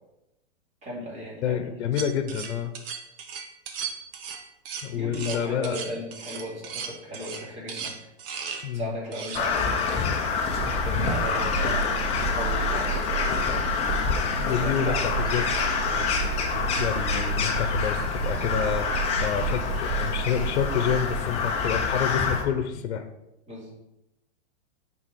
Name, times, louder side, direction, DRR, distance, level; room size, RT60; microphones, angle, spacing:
voice 1, 0.8-1.6 4.9-7.9 8.7-10.2 10.8-13.9 14.6-15.2 23.5-23.7, equal, 20° right, -5 dB, 3.0 m, -36 dB
voice 2, 1.4-2.7 4.8-5.8 8.6-8.9 14.2-23.0, left 9 dB, 70° left, 8 dB, 1.0 m, -29 dB
sound 1, 2.0-8.7 9.1-9.4, right 6 dB, 50° right, 1.2 m, -36 dB
Crow, 9.3-22.4, left 5 dB, 15° left, 0.7 m, -27 dB
sound 2, 10.5-21.2, right 4 dB, 80° right, 1.9 m, -31 dB
9.3 x 4.3 x 4.3 m, 0.89 s
hypercardioid pair, 150°, 35 cm